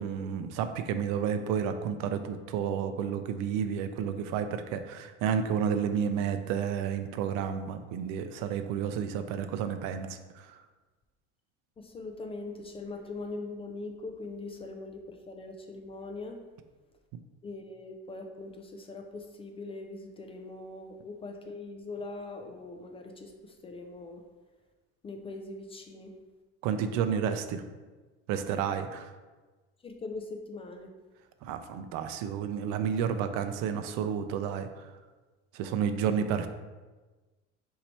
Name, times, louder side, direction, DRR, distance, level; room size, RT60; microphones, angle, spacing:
voice 1, 0.0-10.5 26.6-27.6 28.3-29.1 31.4-34.9 35.5-36.5, right 7 dB, 65° right, 9 dB, 0.5 m, -31 dB
voice 2, 11.8-16.4 17.4-24.2 25.0-26.2 29.8-30.9, left 3 dB, 20° left, 4 dB, 0.3 m, -41 dB
4.1 x 2.8 x 4.4 m, 1.3 s
supercardioid pair, 120°, 30 cm